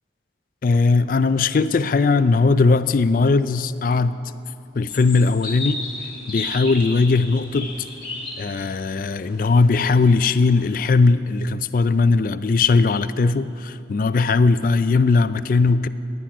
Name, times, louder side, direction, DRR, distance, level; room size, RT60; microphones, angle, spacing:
voice 1, 0.6-4.2 4.7-5.8 6.3-7.8 8.4-15.9, left 4 dB, 45° left, 14 dB, 0.4 m, -19 dB
sound 1, 4.9-9.9, left 2 dB, 25° left, 2.1 m, -34 dB
16.0 x 10.5 x 5.0 m, 2.7 s
head